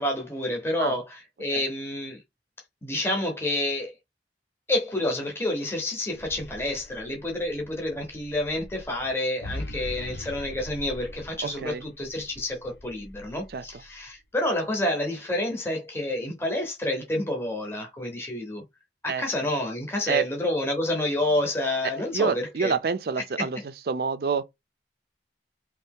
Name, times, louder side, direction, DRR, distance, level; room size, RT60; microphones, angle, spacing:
voice 1, 0.0-2.2 2.8-3.9 4.7-18.6 19.0-22.7 23.2-23.6, left 1 dB, 15° left, 0.8 m, -29 dB
sound 1, 6.0-14.1, left 1 dB, 70° left, 0.6 m, -42 dB
voice 2, 11.4-11.8 13.5-13.6 19.1-19.2 20.1-20.2 22.1-23.6 23.9-24.4, right 5 dB, 55° right, 0.4 m, -27 dB
3.0 x 2.7 x 3.5 m
head